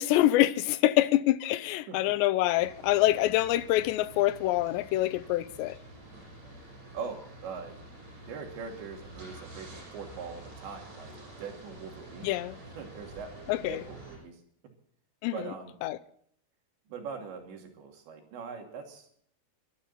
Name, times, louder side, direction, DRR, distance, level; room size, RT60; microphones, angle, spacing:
voice 1, 0.0-5.8 12.2-12.6 13.5-13.8 15.2-15.3 15.8-16.0, left 15 dB, 85° left, 3.0 m, -25 dB
sound 1, 2.5-14.2, right 1 dB, 50° right, 8.2 m, -48 dB
voice 2, 6.9-7.8 8.3-12.3 12.7-14.4 15.3-15.7 16.9-19.1, right 5 dB, 85° right, 4.9 m, -42 dB
23.5 x 12.0 x 4.1 m
omnidirectional pair, 5.0 m